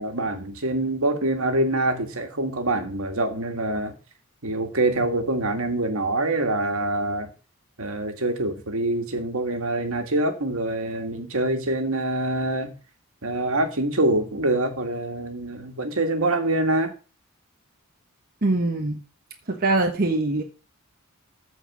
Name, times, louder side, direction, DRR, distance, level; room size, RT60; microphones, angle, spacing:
voice 1, 0.0-4.0 4.4-7.3 7.8-12.7 13.2-16.9, right 2 dB, 75° right, 2.0 m, -25 dB
voice 2, 18.4-19.0 19.5-20.4, right 2 dB, 45° right, 1.2 m, -23 dB
14.0 x 4.7 x 6.1 m
head